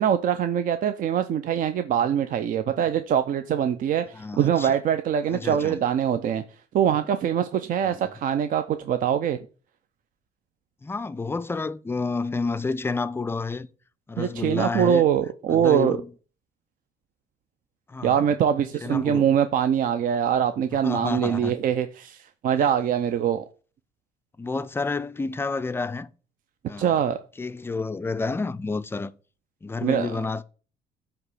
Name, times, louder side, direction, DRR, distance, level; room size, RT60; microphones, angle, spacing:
voice 1, 0.0-4.0 4.4-6.4 6.7-9.4 14.2-16.0 18.0-22.2 22.4-23.4 26.8-27.2 29.8-30.1, right 9 dB, 55° right, 0.5 m, -23 dB
voice 2, 4.1-4.7 5.3-5.8 7.8-8.1 10.8-13.7 14.1-15.1 15.5-16.1 17.9-18.3 18.8-19.3 20.8-21.5 24.4-26.1 26.7-27.0 27.4-29.1 29.6-30.4, left 3 dB, 15° left, 0.4 m, -30 dB
7.8 x 3.0 x 5.5 m
cardioid pair, 110°, 17 cm